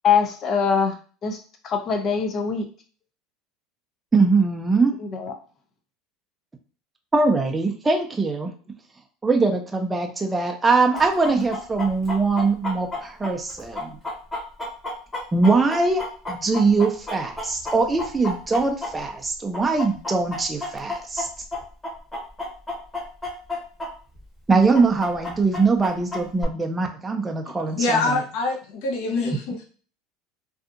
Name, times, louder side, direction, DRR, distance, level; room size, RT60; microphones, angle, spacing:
voice 1, 0.0-0.9 1.2-1.4 1.6-2.7 5.0-5.3, left 6 dB, 40° left, 4 dB, 0.6 m, -22 dB
voice 2, 4.1-4.9 7.1-8.5 9.2-14.0 15.3-21.3 24.5-28.2, right 3 dB, 15° right, 2 dB, 0.5 m, -22 dB
Chicken rooster, 10.9-19.2 19.5-23.9 24.1-24.2 24.7-26.4, left 2 dB, 15° left, 1.0 m, -31 dB
voice 3, 27.8-29.6, left 3 dB, 70° left, -1 dB, 0.9 m, -24 dB
2.6 x 2.4 x 2.5 m, 0.39 s
supercardioid pair, 110°, 0 cm